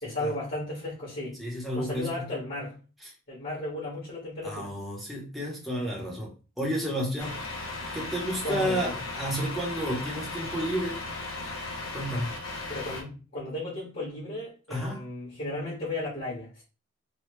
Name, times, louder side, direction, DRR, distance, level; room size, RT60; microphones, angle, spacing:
voice 1, 0.0-1.4 1.7-2.7 3.3-4.7 8.4-9.0 12.7-16.6, left 2 dB, 45° left, 1.4 m, -35 dB
voice 2, 1.4-2.3 4.4-6.3 6.6-7.4 7.9-11.0 11.9-12.3 14.7-15.0, equal, ahead, 0.8 m, -31 dB
Truck, 7.2-13.0, left 2 dB, 70° left, 0.8 m, -36 dB
3.2 x 2.3 x 3.1 m
head